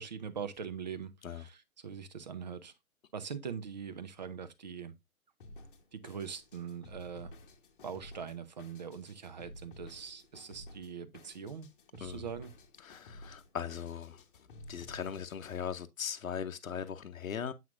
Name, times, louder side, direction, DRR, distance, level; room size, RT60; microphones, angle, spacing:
voice 1, 0.0-1.6 1.8-2.7 3.1-5.0 5.9-7.3 7.8-11.7 11.9-12.5, right 7 dB, 30° right, 0.6 m, -42 dB
Drum kit, 5.4-15.6, left 1 dB, 35° left, 1.0 m, -53 dB
voice 2, 12.8-17.5, left 8 dB, 70° left, 0.8 m, -39 dB
7.5 x 5.8 x 2.4 m
figure-of-eight pair, 130°, 43 cm